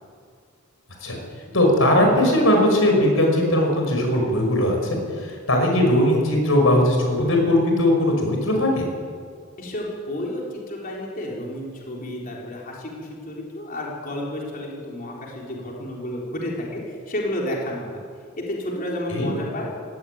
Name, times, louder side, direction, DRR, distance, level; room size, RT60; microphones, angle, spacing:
voice 1, 1.5-8.9 19.1-19.3, left 1 dB, 75° left, 2 dB, 5.8 m, -19 dB
voice 2, 9.6-18.0 18.3-19.7, left 1 dB, 40° left, -3 dB, 4.0 m, -31 dB
18.0 x 15.5 x 9.5 m, 2.1 s
head